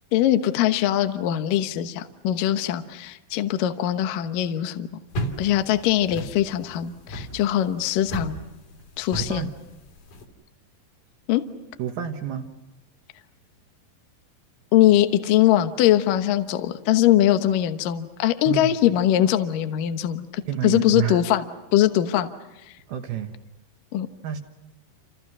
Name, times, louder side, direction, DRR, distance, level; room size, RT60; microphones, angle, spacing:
voice 1, 0.1-4.9 5.4-8.4 9.0-9.5 11.3-11.5 14.7-21.4 21.7-22.3 23.9-24.1, left 12 dB, 70° left, 8 dB, 2.2 m, -21 dB
sound 1, 5.1-10.2, right 1 dB, 50° left, 4.3 m, -34 dB
voice 2, 9.2-9.5 11.8-12.5 18.5-18.8 20.5-21.2 22.9-23.3 24.2-24.4, right 10 dB, 65° right, 5 dB, 2.9 m, -29 dB
29.5 x 28.0 x 6.1 m, 0.97 s
omnidirectional pair, 5.2 m